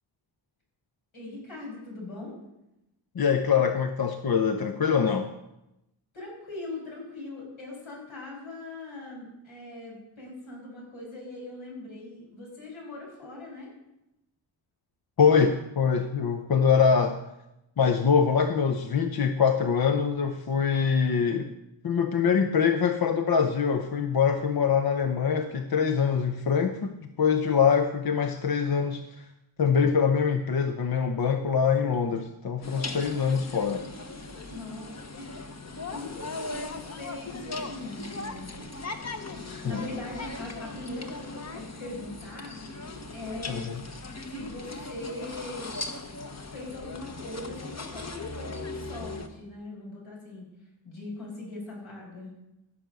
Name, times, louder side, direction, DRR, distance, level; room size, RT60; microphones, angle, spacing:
voice 1, 1.1-2.3 6.1-13.7 34.5-34.9 35.1-35.3 35.9-38.7 39.6-42.6 43.1-43.7 44.3-45.7 46.5-50.5 50.8-52.4, left 2 dB, 80° left, -2 dB, 6.1 m, -40 dB
voice 2, 3.1-5.3 15.2-17.2 17.8-21.5 21.8-29.3 29.6-33.9 39.5-39.8 43.5-43.8, left 6 dB, 50° left, 7 dB, 0.8 m, -24 dB
sound 1, 32.6-49.3, left 3 dB, 35° left, 1.2 m, -39 dB
15.0 x 6.4 x 6.8 m, 0.90 s
wide cardioid pair, 105°, 47 cm